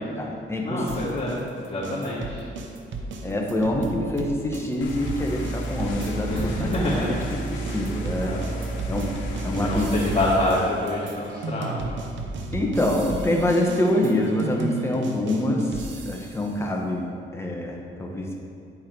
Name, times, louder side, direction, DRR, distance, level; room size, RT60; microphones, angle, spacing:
voice 1, 0.0-1.1 2.3-2.4 3.2-7.1 7.5-8.4 8.9-9.1 9.4-10.0 12.5-17.1 17.3-18.4, left 1 dB, 10° left, 0 dB, 1.3 m, -26 dB
voice 2, 0.6-2.5 6.3-7.3 8.3-8.4 9.4-12.0, left 1 dB, 30° left, -9 dB, 2.0 m, -27 dB
sound 1, 0.9-6.5 6.7-16.5, right 3 dB, 70° right, 0.8 m, -35 dB
sound 2, 4.8-10.3, right 2 dB, 75° left, 1.3 m, -31 dB
10.5 x 4.6 x 4.6 m, 2.4 s
cardioid pair, 90°, 20 cm